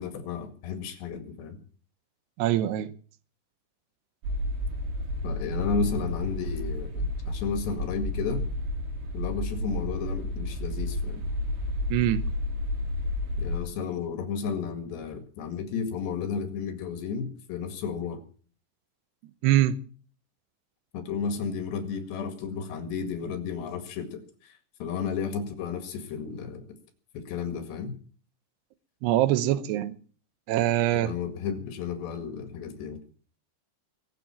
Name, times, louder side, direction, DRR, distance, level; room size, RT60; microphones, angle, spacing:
voice 1, 0.0-1.6 5.2-8.4 9.1-11.2 13.4-18.2 20.9-24.5 24.8-26.7 27.1-27.9 31.0-33.0, left 6 dB, 70° left, 4.0 m, -33 dB
voice 2, 2.4-2.9 11.9-12.3 19.4-19.8 29.0-30.0 30.5-31.1, right 13 dB, 75° right, 2.9 m, -23 dB
sound 1, 4.2-13.6, left 1 dB, 90° right, 5.2 m, -31 dB
22.5 x 7.7 x 7.4 m
omnidirectional pair, 5.3 m